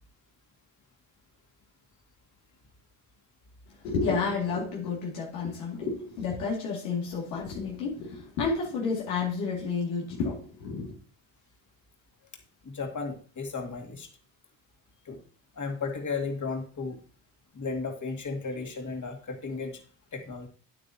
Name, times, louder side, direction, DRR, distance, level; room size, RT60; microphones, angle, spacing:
voice 1, 3.8-10.9, left 4 dB, 90° left, 2.4 m, -31 dB
voice 2, 12.6-14.1 15.1-15.2 15.5-17.0 17.5-19.8 20.1-20.5, left 4 dB, 35° left, 2.2 m, -34 dB
9.1 x 8.6 x 2.8 m
supercardioid pair, 65°, 48 cm